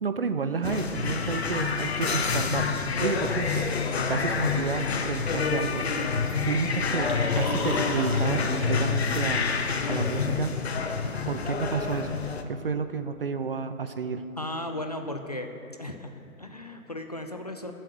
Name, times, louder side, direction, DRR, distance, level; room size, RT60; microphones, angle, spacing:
voice 1, 0.0-3.7 4.1-5.8 6.4-7.1 7.4-9.4 9.9-10.5 11.3-12.2 12.5-14.2, right 5 dB, 40° right, 9 dB, 0.7 m, -30 dB
sound 1, 0.6-12.4, left 5 dB, 45° left, 1.0 m, -27 dB
sound 2, 6.7-9.8, left 2 dB, 75° left, 2.4 m, -38 dB
voice 2, 14.4-15.5 15.8-17.7, left 1 dB, 30° left, 5 dB, 0.5 m, -36 dB
21.0 x 7.7 x 6.5 m, 2.7 s
figure-of-eight pair, 145°, 44 cm